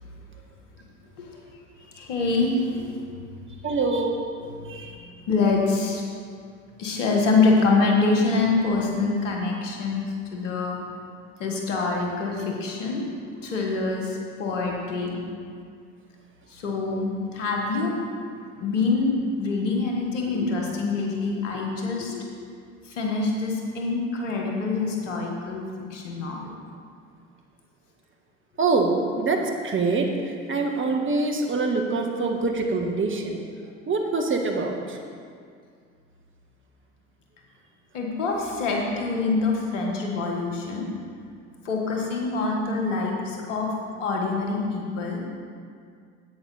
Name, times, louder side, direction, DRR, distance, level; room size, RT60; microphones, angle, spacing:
voice 1, 1.8-3.0 4.4-6.0 6.8-10.8 11.4-13.1 13.4-15.2 16.5-18.0 18.6-22.3 22.8-25.6 25.9-26.5 37.9-40.9 41.6-43.7 44.0-45.2, left 3 dB, 85° left, 0 dB, 1.6 m, -25 dB
voice 2, 3.6-4.2 4.7-5.0 28.6-30.1 30.5-33.4 33.9-35.0, right 3 dB, 35° right, 2 dB, 1.5 m, -24 dB
10.5 x 8.4 x 4.2 m, 2.2 s
hypercardioid pair, 60°, 36 cm